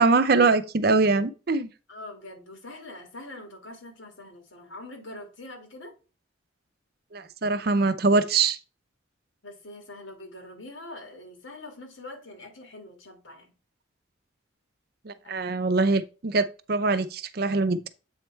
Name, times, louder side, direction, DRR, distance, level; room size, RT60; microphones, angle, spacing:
voice 1, 0.0-1.7 7.1-8.6 15.0-17.8, right 3 dB, 50° right, 0.5 m, -23 dB
voice 2, 1.9-5.9 9.4-13.5, left 2 dB, 85° left, 1.9 m, -43 dB
7.9 x 3.2 x 4.4 m
head